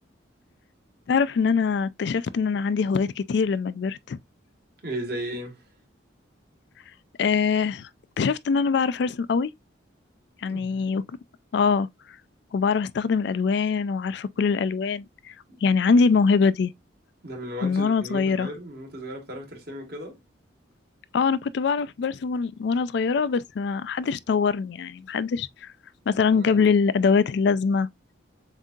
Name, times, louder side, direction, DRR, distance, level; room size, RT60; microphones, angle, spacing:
voice 1, 1.1-4.2 7.2-7.9 8.2-9.5 10.4-11.0 11.5-11.9 12.5-15.3 15.6-16.7 17.6-18.5 21.1-25.7 26.1-27.9, left 5 dB, 60° left, 0.3 m, -23 dB
voice 2, 4.8-5.7 10.4-10.9 15.5-15.7 17.2-20.2 26.3-26.6, equal, 55° right, 1.7 m, -36 dB
7.3 x 2.7 x 2.3 m
head